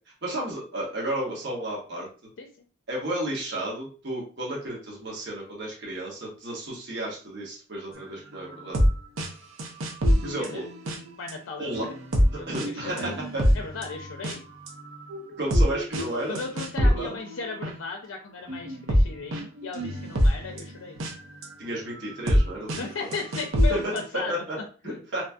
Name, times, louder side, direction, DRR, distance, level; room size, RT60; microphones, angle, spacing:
voice 1, 0.2-2.1 2.9-8.8 10.2-10.7 11.6-11.9 12.3-13.4 15.4-16.4 16.8-17.2 21.6-23.1 24.3-24.6 24.8-25.2, right 1 dB, 60° right, -4 dB, 1.1 m, -33 dB
sound 1, 8.4-8.9 9.2-9.3 9.6-11.3 11.7-14.4 14.7-17.7 18.5-21.5 22.0-22.4 22.7-22.8 23.1-24.1, equal, 85° right, 0.7 m, -25 dB
voice 2, 11.2-11.9 12.4-13.2 13.5-14.5 16.3-21.0 22.8-24.4 24.8-25.0, left 4 dB, 80° left, 2 dB, 0.4 m, -36 dB
3.0 x 2.6 x 2.2 m, 0.38 s
head